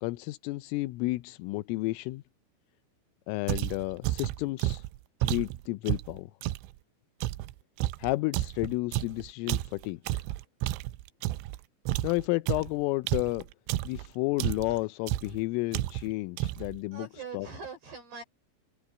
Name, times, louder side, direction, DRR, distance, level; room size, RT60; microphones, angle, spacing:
voice 1, 0.0-2.2 3.3-4.8 5.2-6.3 8.0-10.0 12.0-13.5 13.8-17.1 17.3-17.5, left 21 dB, 85° left, 3.3 m, -31 dB
sound 1, 3.5-6.7 7.2-11.6 11.9-14.1 14.4-14.8 15.1-15.4 15.7-16.1 16.4-16.8, right 16 dB, 80° right, 2.7 m, -31 dB
voice 2, 16.9-18.2, right 5 dB, 55° right, 8.3 m, -42 dB
omnidirectional pair, 5.8 m